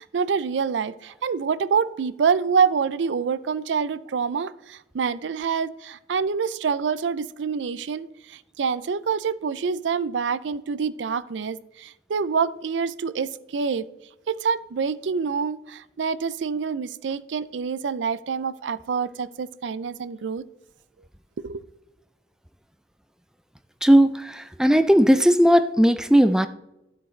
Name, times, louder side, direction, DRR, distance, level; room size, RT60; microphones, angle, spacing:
voice 1, 0.0-13.9 14.3-20.4 21.4-21.6, right 6 dB, 90° right, 16 dB, 0.4 m, -26 dB
voice 2, 23.8-26.5, equal, 5° right, 10 dB, 0.4 m, -17 dB
13.0 x 7.5 x 3.2 m, 0.91 s
head